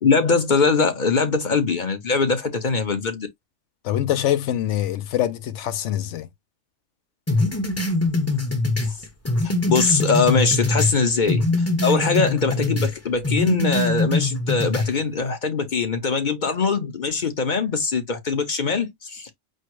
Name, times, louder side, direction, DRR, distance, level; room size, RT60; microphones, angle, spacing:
voice 1, 0.0-3.3 9.4-11.5 11.8-19.3, left 4 dB, 45° left, 0.9 m, -22 dB
voice 2, 3.8-6.3, left 12 dB, 80° left, 0.9 m, -24 dB
sound 1, 7.3-11.0 11.3-12.9 13.2-14.9, left 2 dB, 15° left, 0.7 m, -22 dB
4.5 x 2.0 x 4.6 m
omnidirectional pair, 1.3 m